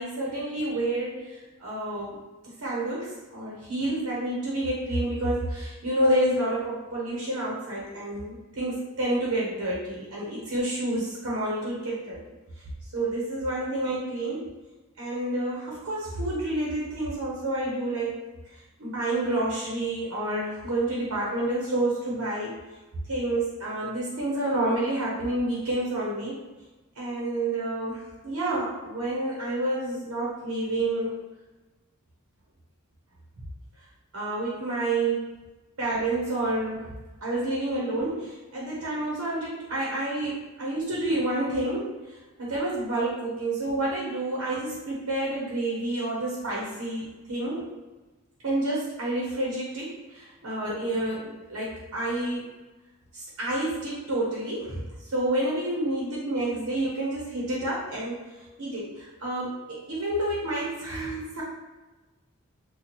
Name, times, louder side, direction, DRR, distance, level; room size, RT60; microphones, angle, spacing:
voice 1, 0.0-2.2 2.4-12.2 12.9-14.5 15.0-18.2 18.5-22.5 23.1-26.4 27.0-31.1 34.1-35.3 35.8-36.9 37.2-47.7 48.4-52.4 53.1-58.2 58.6-61.4, right 1 dB, 70° right, -5 dB, 0.8 m, -29 dB
2.9 x 2.3 x 4.1 m, 1.2 s
head